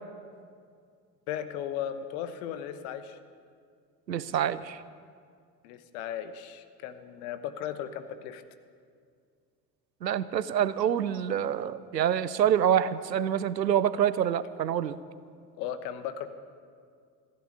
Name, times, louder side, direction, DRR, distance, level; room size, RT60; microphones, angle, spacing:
voice 1, 1.3-3.2 5.6-8.4 15.6-16.3, left 9 dB, 60° left, 11 dB, 1.2 m, -36 dB
voice 2, 4.1-4.8 10.0-15.0, right 9 dB, 90° right, 16 dB, 0.6 m, -26 dB
15.0 x 11.0 x 8.4 m, 2.2 s
figure-of-eight pair, 60°, 49 cm